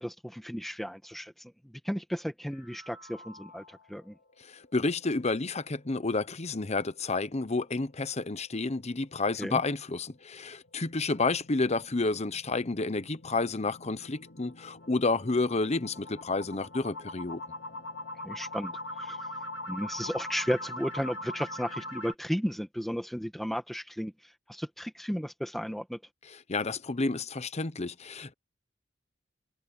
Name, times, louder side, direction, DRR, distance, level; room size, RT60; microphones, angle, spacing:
voice 1, 0.0-1.3 1.8-4.2 9.4-9.6 18.2-19.2 19.7-24.1 24.5-26.0, equal, ahead, 1.7 m, -34 dB
sound 1, 2.5-4.0 4.4-4.5 4.9-5.0 5.4-5.5 10.3-22.1, left 1 dB, 75° left, 2.6 m, -42 dB
voice 2, 4.5-17.4 26.3-28.3, left 3 dB, 35° left, 0.9 m, -30 dB
head